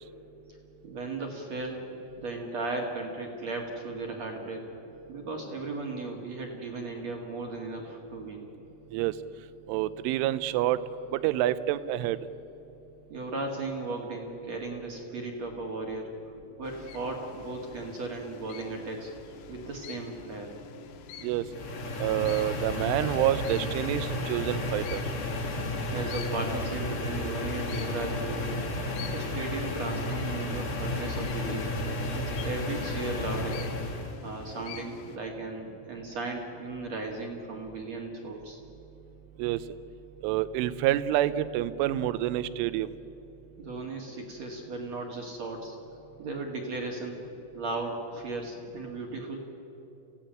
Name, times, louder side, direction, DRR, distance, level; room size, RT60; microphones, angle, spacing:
voice 1, 0.8-1.9 2.2-4.6 5.1-8.5 13.1-19.1 19.5-20.5 25.9-28.5 29.0-31.7 32.1-33.7 34.2-38.6 43.6-45.8 46.2-47.2 47.5-49.4, right 2 dB, 50° right, 0 dB, 2.0 m, -36 dB
voice 2, 9.7-10.8 11.1-12.2 21.2-21.4 22.0-25.0 39.4-39.6 40.2-42.9, right 13 dB, 80° right, 14 dB, 3.0 m, -27 dB
sound 1, 16.6-35.2, left 9 dB, 80° left, 3.9 m, -48 dB
sound 2, 21.5-34.1, left 1 dB, 40° left, 2.1 m, -32 dB
29.0 x 16.0 x 9.1 m, 2.9 s
omnidirectional pair, 6.0 m